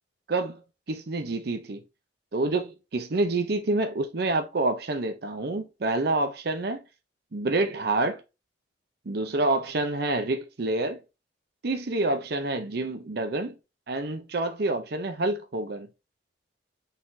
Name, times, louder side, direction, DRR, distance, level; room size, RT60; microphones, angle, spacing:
voice 1, 0.3-0.6 0.9-1.8 2.3-6.8 7.3-8.2 9.1-11.0 11.6-13.5 13.9-15.9, right 2 dB, 55° right, 0.6 m, -27 dB
4.1 x 3.9 x 2.7 m
head